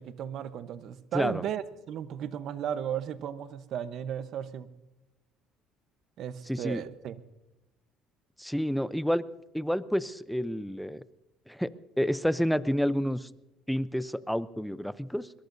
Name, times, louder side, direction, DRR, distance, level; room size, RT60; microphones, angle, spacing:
voice 1, 0.0-4.7 6.2-7.2, right 9 dB, 60° right, 12 dB, 0.9 m, -35 dB
voice 2, 6.5-6.8 8.4-9.2 9.5-11.0 11.5-13.3 13.7-15.3, equal, ahead, 16 dB, 0.6 m, -29 dB
22.0 x 21.5 x 2.7 m, 0.99 s
cardioid pair, 110°, 0 cm